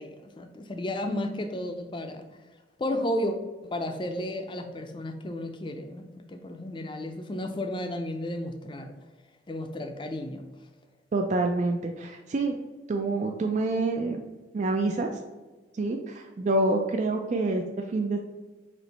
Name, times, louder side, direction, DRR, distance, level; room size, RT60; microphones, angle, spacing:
voice 1, 0.0-2.3 2.8-3.4 3.6-9.0 9.5-10.4, left 1 dB, 25° left, 6 dB, 0.5 m, -33 dB
voice 2, 11.1-12.6 12.9-14.2 14.5-15.1 15.8-17.6 17.9-18.2, right 2 dB, 40° right, 3 dB, 0.3 m, -27 dB
4.4 x 3.0 x 4.0 m, 1.2 s
head